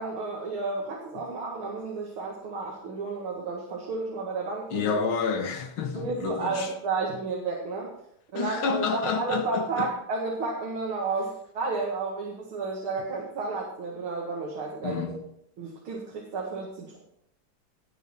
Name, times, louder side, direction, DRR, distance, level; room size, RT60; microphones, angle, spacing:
voice 1, 0.0-4.9 5.9-7.9 8.3-15.2 15.6-17.0, right 3 dB, 85° right, 2.7 m, -32 dB
voice 2, 4.7-6.7 8.3-9.9 13.0-13.1 14.8-15.3, left 5 dB, 75° left, 2.2 m, -29 dB
18.5 x 7.0 x 4.4 m
omnidirectional pair, 2.3 m